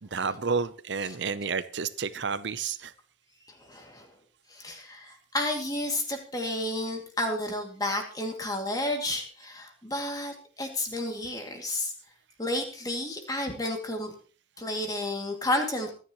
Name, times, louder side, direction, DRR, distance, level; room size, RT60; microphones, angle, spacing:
voice 1, 0.0-2.9, right 5 dB, 65° right, 13 dB, 0.7 m, -30 dB
voice 2, 3.6-4.1 4.5-11.9 12.4-14.1 14.6-15.9, left 1 dB, 20° left, 3 dB, 2.5 m, -31 dB
24.0 x 10.0 x 3.1 m, 0.38 s
head